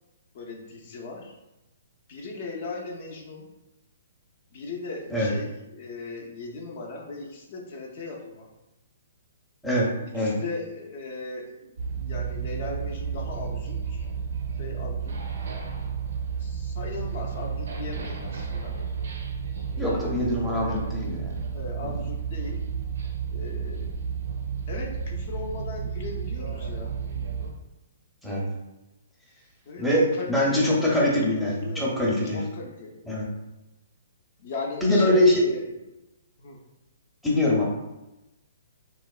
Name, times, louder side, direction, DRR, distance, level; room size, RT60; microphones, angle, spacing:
voice 1, 0.3-1.3 2.1-3.5 4.5-8.5 10.1-14.1 14.6-15.1 16.4-18.8 19.7-20.9 21.5-22.6 23.3-23.9 24.7-27.0 29.7-32.0 32.2-33.0 34.4-35.7 36.4-36.6, left 3 dB, 50° left, 0 dB, 0.4 m, -38 dB
voice 2, 9.6-10.4 19.8-21.3 28.2-28.4 29.8-32.4 33.1-33.3 34.8-35.3 37.2-37.6, left 1 dB, ahead, -6 dB, 0.5 m, -23 dB
sound 1, 11.8-27.5, right 6 dB, 75° right, 0.5 m, -32 dB
2.9 x 2.0 x 2.3 m, 0.98 s
hypercardioid pair, 140°, 0 cm